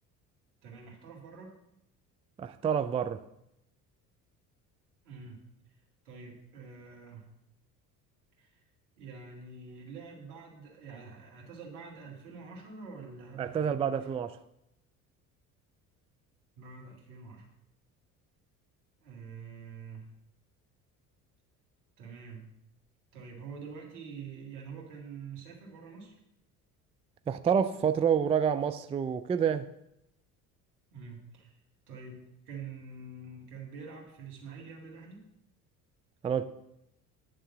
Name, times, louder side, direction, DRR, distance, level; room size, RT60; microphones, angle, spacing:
voice 1, 0.6-1.6 5.0-5.4 6.0-7.3 8.4-8.6 9.0-14.1 16.6-17.5 19.0-20.1 22.0-22.5 23.1-26.1 30.9-31.6 31.9-35.3, right 5 dB, 75° right, 2.0 m, -46 dB
voice 2, 2.4-3.2 13.4-14.3 27.3-29.7 36.2-36.5, right 7 dB, 15° right, 0.3 m, -28 dB
9.7 x 3.7 x 7.0 m
hypercardioid pair, 60°, 44 cm